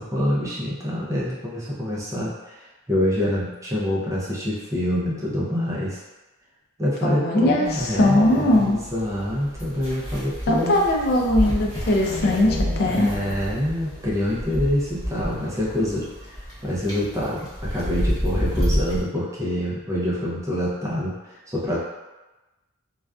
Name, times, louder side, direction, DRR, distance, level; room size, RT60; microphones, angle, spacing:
voice 1, 0.0-2.6 2.9-6.0 6.8-10.7 12.8-21.8, left 1 dB, 15° right, -6 dB, 0.5 m, -26 dB
voice 2, 7.0-8.8 10.5-13.1, left 1 dB, 50° left, 0 dB, 0.4 m, -20 dB
sound 1, 7.6-19.0, equal, 20° left, 0.7 m, -30 dB
sound 2, 10.9-15.4, equal, 60° right, 0.6 m, -36 dB
2.4 x 2.2 x 2.3 m, 1.1 s
head